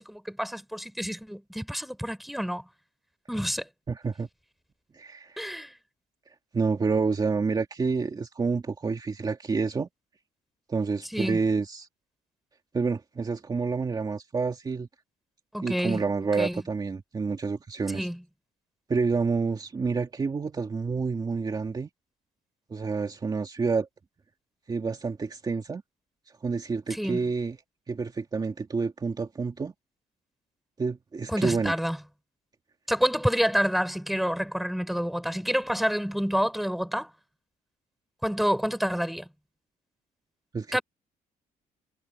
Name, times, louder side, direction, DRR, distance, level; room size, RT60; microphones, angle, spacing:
voice 1, 0.0-2.6 3.3-3.6 5.4-5.7 11.1-11.4 15.5-16.0 16.4-16.6 17.9-18.2 26.9-27.2 31.3-32.0 32.9-37.1 38.2-39.3 40.7-40.8, equal, ahead, 3.8 m, -28 dB
voice 2, 3.9-4.3 4.9-5.4 6.5-9.9 10.7-11.9 12.7-14.9 15.6-18.1 18.9-21.9 22.7-23.9 24.7-25.8 26.4-27.6 27.9-29.7 30.8-31.7 40.5-40.8, right 4 dB, 25° right, 2.4 m, -28 dB
cardioid pair, 135°, 16 cm